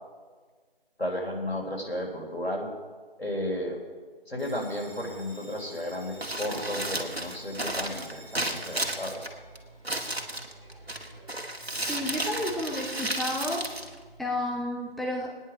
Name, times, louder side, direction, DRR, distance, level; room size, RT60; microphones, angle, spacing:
voice 1, 1.0-2.7 3.2-3.8 4.3-9.2, left 1 dB, 85° left, 0 dB, 3.5 m, -33 dB
Bell, 4.4-11.4, right 1 dB, 30° right, 4.1 m, -51 dB
Crumpling crinkling, 6.1-14.6, right 1 dB, 80° right, 1.6 m, -34 dB
voice 2, 11.8-13.7 14.2-15.4, left 1 dB, ahead, -2 dB, 0.6 m, -31 dB
18.0 x 9.9 x 5.1 m, 1.5 s
figure-of-eight pair, 175°, 31 cm